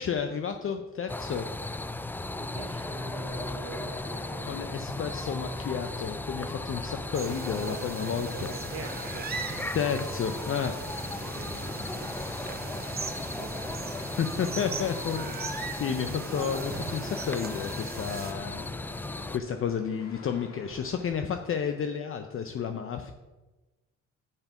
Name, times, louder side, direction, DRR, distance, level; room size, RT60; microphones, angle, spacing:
voice 1, 0.0-1.5 4.5-8.5 9.7-10.7 14.2-19.0 19.3-23.1, left 7 dB, 45° left, 6 dB, 0.6 m, -31 dB
sound 1, 1.1-19.4, left 2 dB, 5° left, 0.3 m, -36 dB
voice 2, 2.2-5.0 6.4-7.0 7.4-9.6 10.4-10.5 11.2-14.2, right 4 dB, 50° right, 2 dB, 1.2 m, -45 dB
sound 2, 3.1-21.2, left 4 dB, 60° left, 1.7 m, -51 dB
sound 3, 7.1-18.3, right 5 dB, 30° right, 0.9 m, -40 dB
8.2 x 5.3 x 5.8 m, 1.1 s
cardioid pair, 90°, 30 cm